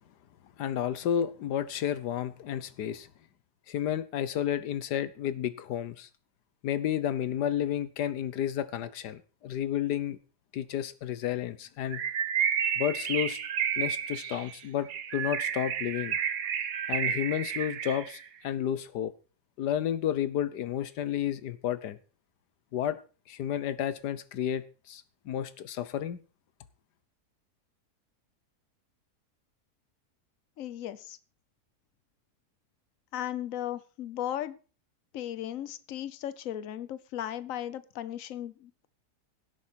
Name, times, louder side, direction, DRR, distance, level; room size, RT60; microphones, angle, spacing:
voice 1, 0.6-3.1 3.7-6.1 6.6-10.2 10.5-12.0 12.8-13.4 13.8-16.2 16.9-19.1 19.6-22.0 22.7-23.0 23.3-26.2, left 10 dB, 90° left, 1.5 m, -31 dB
Bird, 11.9-18.2, right 8 dB, 60° right, 1.4 m, -31 dB
voice 2, 30.6-31.2 33.1-34.6 35.1-38.9, left 11 dB, 60° left, 1.2 m, -36 dB
17.0 x 8.1 x 4.6 m
omnidirectional pair, 1.7 m